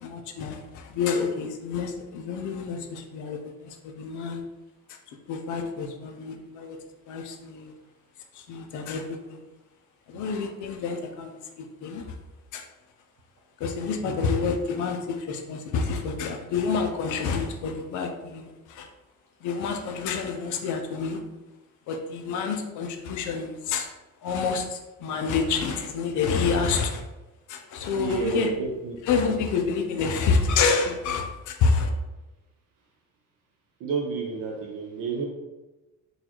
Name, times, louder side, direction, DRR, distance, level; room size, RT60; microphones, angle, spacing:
voice 1, 0.0-4.4 4.9-5.0 5.3-6.8 7.1-7.7 8.3-9.4 10.1-12.0 12.5-12.6 13.6-18.9 19.4-21.2 21.9-23.9 24.2-27.0 27.5-28.5 29.0-31.9, left 5 dB, 65° left, 5 dB, 0.5 m, -28 dB
voice 2, 28.0-29.0 33.8-35.2, right 5 dB, 75° right, -1 dB, 0.7 m, -30 dB
4.0 x 2.4 x 2.9 m, 1.1 s
cardioid pair, 170°, 32 cm